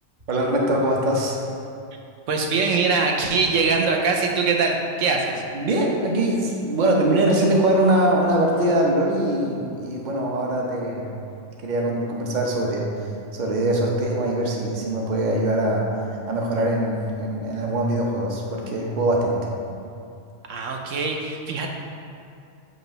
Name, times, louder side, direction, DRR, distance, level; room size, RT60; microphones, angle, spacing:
voice 1, 0.3-1.4 5.5-11.2 11.6-12.9 13.3-15.9 16.3-19.4, right 1 dB, 40° right, -1 dB, 0.8 m, -22 dB
voice 2, 2.3-5.4 20.5-21.7, right 4 dB, 75° right, 2 dB, 1.1 m, -22 dB
7.8 x 3.0 x 5.4 m, 2.5 s
omnidirectional pair, 1.3 m